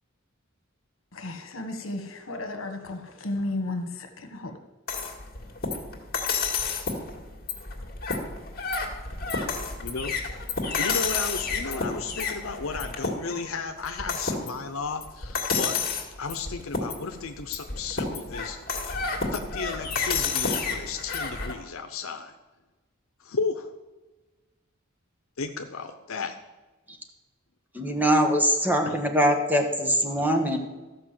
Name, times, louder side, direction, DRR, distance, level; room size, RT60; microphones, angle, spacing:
voice 1, 1.1-4.6, left 2 dB, 75° left, 6 dB, 1.4 m, -33 dB
sound 1, 4.9-21.5, left 4 dB, 50° left, 2.0 m, -30 dB
voice 2, 9.8-10.2 10.8-15.8 16.2-18.8 19.3-22.3 23.2-23.7 25.4-26.4 28.8-29.0 30.2-30.3, left 4 dB, 90° left, 7 dB, 0.7 m, -34 dB
voice 3, 27.7-30.6, equal, 10° right, 3 dB, 1.2 m, -23 dB
13.5 x 5.4 x 7.5 m, 1.2 s
head